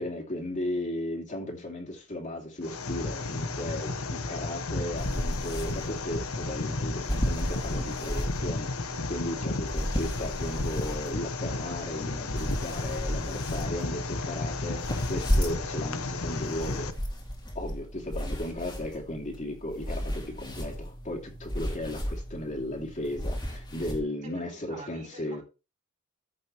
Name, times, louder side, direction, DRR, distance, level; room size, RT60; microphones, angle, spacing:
voice 1, 0.0-17.1 17.5-25.4, left 1 dB, 35° left, 2.8 m, -36 dB
sound 1, 2.6-16.9, left 3 dB, 85° left, 1.1 m, -33 dB
sound 2, 5.0-24.0, equal, 20° left, 2.5 m, -34 dB
voice 2, 24.2-25.4, right 1 dB, 35° right, 3.9 m, -47 dB
14.5 x 6.3 x 3.1 m
head